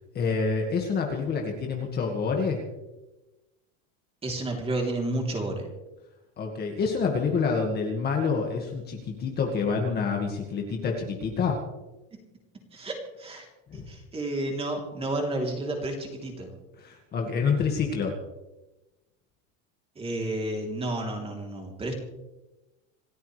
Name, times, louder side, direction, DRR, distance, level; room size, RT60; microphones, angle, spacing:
voice 1, 0.1-2.6 6.4-11.6 13.7-13.9 16.8-18.1, left 5 dB, 25° left, 1 dB, 1.9 m, -27 dB
voice 2, 4.2-5.7 12.1-12.2 12.7-13.5 13.7-16.5 20.0-21.9, right 1 dB, 15° right, 1 dB, 3.3 m, -31 dB
27.0 x 13.5 x 3.3 m, 1.0 s
supercardioid pair, 160°, 39 cm